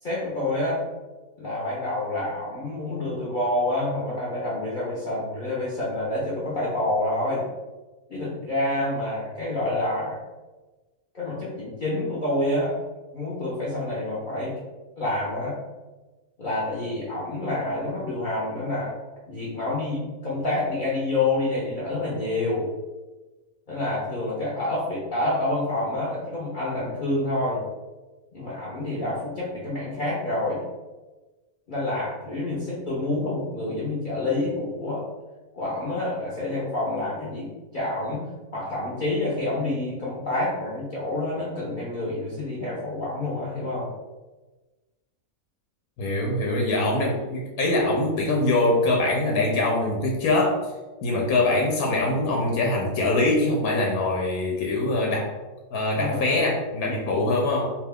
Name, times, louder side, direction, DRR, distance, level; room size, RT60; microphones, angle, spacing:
voice 1, 0.0-0.8 1.4-7.5 8.1-10.2 11.1-12.8 13.1-14.6 15.0-15.6 16.4-18.9 19.3-22.7 23.7-27.6 28.3-30.6 31.7-35.0 35.5-43.9 56.0-56.4, left 2 dB, 50° left, -7 dB, 0.6 m, -28 dB
voice 2, 46.0-50.7 51.0-55.3 55.7-57.6, left 2 dB, 90° left, -1 dB, 1.1 m, -23 dB
2.8 x 2.2 x 3.4 m, 1.2 s
omnidirectional pair, 1.5 m